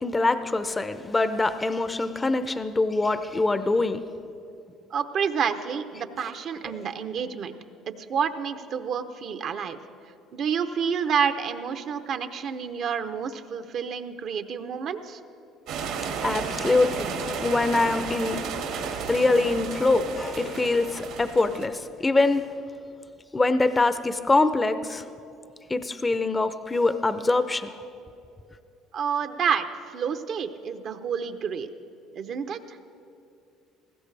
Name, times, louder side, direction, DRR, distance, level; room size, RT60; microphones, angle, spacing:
voice 1, 0.0-4.0 6.2-6.3 6.6-6.8 16.2-18.4 19.1-22.4 23.3-25.1 25.7-27.8, left 3 dB, 20° left, 11 dB, 0.6 m, -24 dB
voice 2, 4.9-7.6 7.9-9.8 10.3-15.2 28.9-31.7 32.1-32.8, right 7 dB, 55° right, 9 dB, 0.8 m, -29 dB
sound 1, 15.7-21.7, right 5 dB, 75° right, 1.9 m, -33 dB
18.5 x 16.0 x 3.4 m, 2.7 s
hypercardioid pair, 70°, 0 cm